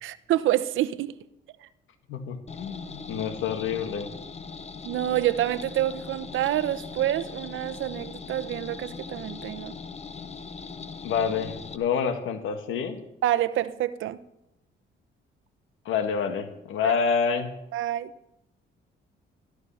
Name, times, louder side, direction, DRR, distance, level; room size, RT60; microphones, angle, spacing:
voice 1, 0.0-1.1 1.6-1.7 4.8-9.8 13.2-14.2 16.8-16.9 17.7-18.1, right 13 dB, 80° right, 0.8 m, -27 dB
voice 2, 2.1-4.1 11.0-13.0 15.9-17.5, left 6 dB, 85° left, 1.9 m, -28 dB
sound 1, 2.5-11.8, left 5 dB, 35° left, 1.1 m, -40 dB
13.5 x 13.0 x 5.7 m
cardioid pair, 90°, 20 cm